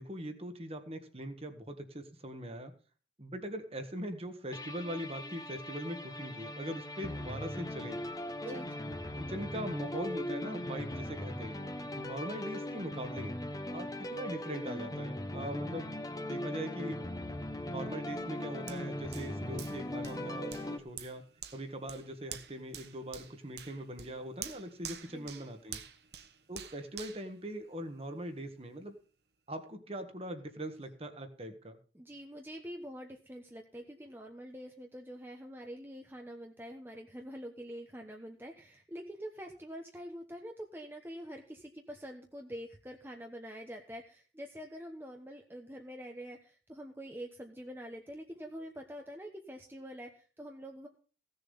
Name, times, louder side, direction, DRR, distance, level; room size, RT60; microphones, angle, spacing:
voice 1, 0.0-2.7 3.2-8.0 8.4-11.6 11.9-13.3 13.7-16.0 16.2-17.0 17.6-21.2 21.5-25.8 26.5-28.9 29.5-31.8, right 1 dB, 35° right, 7 dB, 1.6 m, -41 dB
sound 1, 4.5-20.8, left 1 dB, 20° left, 1.1 m, -39 dB
voice 2, 8.5-8.8 25.0-25.5 31.9-50.9, equal, 10° right, 2 dB, 1.0 m, -46 dB
Hands, 18.7-28.2 28.7-28.8, right 9 dB, 65° right, 1.2 m, -48 dB
16.5 x 7.0 x 5.6 m, 0.39 s
head